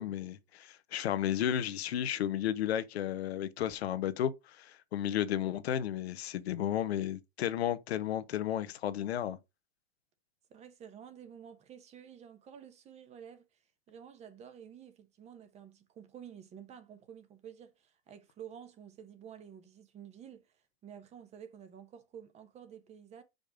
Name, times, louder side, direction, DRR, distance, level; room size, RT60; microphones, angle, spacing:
voice 1, 0.0-9.4, left 10 dB, 75° left, 1.0 m, -33 dB
voice 2, 10.5-13.5 13.9-23.2, right 8 dB, 20° right, 1.0 m, -51 dB
5.3 x 5.3 x 5.1 m
supercardioid pair, 145°, 31 cm